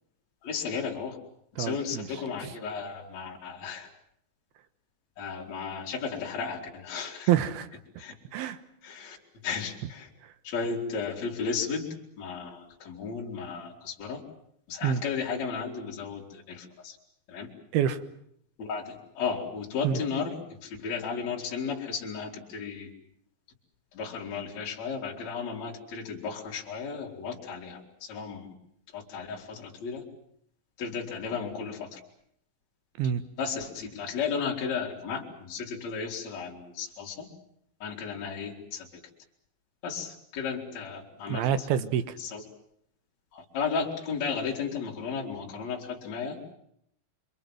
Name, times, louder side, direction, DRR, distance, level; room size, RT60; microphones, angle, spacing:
voice 1, 0.4-1.2 1.6-3.9 5.2-7.3 8.0-8.1 8.8-9.2 9.4-10.1 10.4-14.2 14.7-17.0 17.3-17.5 18.6-22.9 23.9-28.5 28.9-30.0 30.8-32.0 33.4-37.3 37.8-39.0 39.8-41.5 42.2-42.4 43.3-46.5, left 5 dB, 40° left, -2 dB, 4.4 m, -34 dB
voice 2, 1.6-2.0 2.4-2.5 7.3-7.7 8.3-8.6 14.8-15.0 17.7-18.0 19.8-20.0 33.0-33.2 41.3-42.1, right 9 dB, 70° right, 12 dB, 2.8 m, -26 dB
27.5 x 24.5 x 7.7 m, 0.71 s
omnidirectional pair, 5.2 m